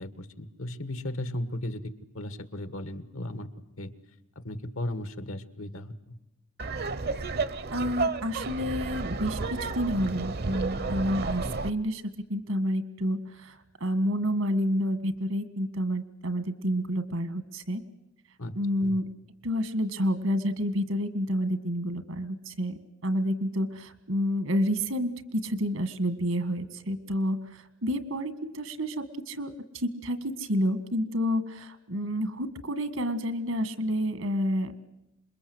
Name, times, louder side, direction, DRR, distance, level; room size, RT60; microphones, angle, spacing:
voice 1, 0.0-1.8 2.1-3.5 3.8-3.9 4.3-6.2 18.4-19.0, left 1 dB, 80° left, 12 dB, 1.6 m, -36 dB
Laughter, 6.6-11.7, right 3 dB, 50° right, 0.8 m, -32 dB
voice 2, 7.7-12.0 12.3-17.8 18.5-19.0 19.4-22.7 23.0-34.9, equal, 75° right, 11 dB, 1.8 m, -29 dB
27.0 x 22.0 x 8.0 m, 0.91 s
head